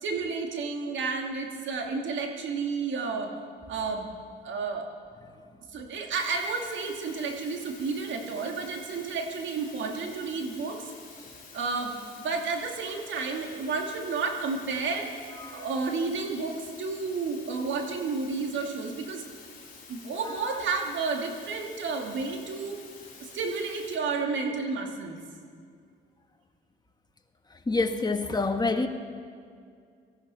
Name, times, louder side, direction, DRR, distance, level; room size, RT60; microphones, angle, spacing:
voice 1, 0.0-3.3 3.7-4.1 4.4-4.9 5.7-15.1 15.5-19.2 19.9-22.8 23.2-25.2, right 4 dB, 70° right, 3 dB, 2.3 m, -31 dB
sound 1, 6.1-24.0, left 5 dB, 45° left, 3.8 m, -49 dB
voice 2, 27.7-28.9, left 3 dB, 20° left, 6 dB, 1.4 m, -27 dB
18.5 x 14.0 x 5.6 m, 2.2 s
cardioid pair, 90°, 20 cm